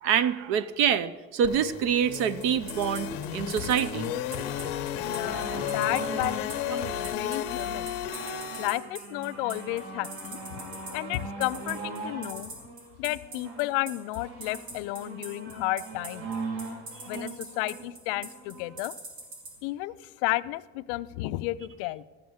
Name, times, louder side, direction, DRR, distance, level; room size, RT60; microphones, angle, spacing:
voice 1, 0.0-4.1, right 8 dB, 45° right, 17 dB, 0.5 m, -26 dB
sound 1, 1.4-8.7, left 8 dB, 50° left, 0.9 m, -33 dB
sound 2, 2.1-19.5, right 3 dB, 85° right, 4.3 m, -41 dB
voice 2, 5.0-7.9 8.6-12.5 13.0-16.3 17.1-18.9 19.6-22.0, left 18 dB, 65° left, 15 dB, 0.5 m, -32 dB
sound 3, 5.2-18.8 19.6-19.7, right 3 dB, 65° right, 4.6 m, -40 dB
13.5 x 6.8 x 7.9 m, 1.3 s
cardioid pair, 175°, 29 cm